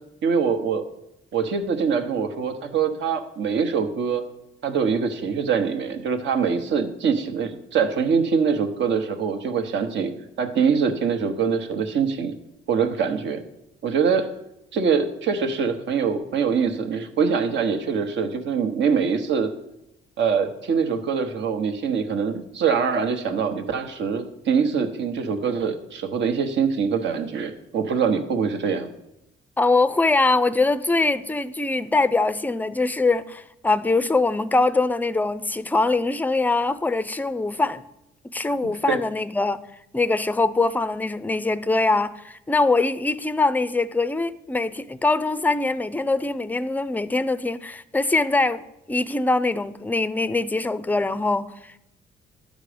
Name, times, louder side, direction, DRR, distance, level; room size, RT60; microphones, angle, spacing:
voice 1, 0.2-0.8 1.3-4.2 4.6-10.1 10.4-12.3 12.7-13.4 13.8-14.3 14.7-19.5 20.2-28.9 38.9-39.0, right 6 dB, 65° right, 1.0 m, -23 dB
voice 2, 29.6-37.8 38.2-39.6 39.9-51.5, left 3 dB, 10° left, 0.4 m, -23 dB
11.0 x 5.2 x 5.0 m
cardioid pair, 90°, 20 cm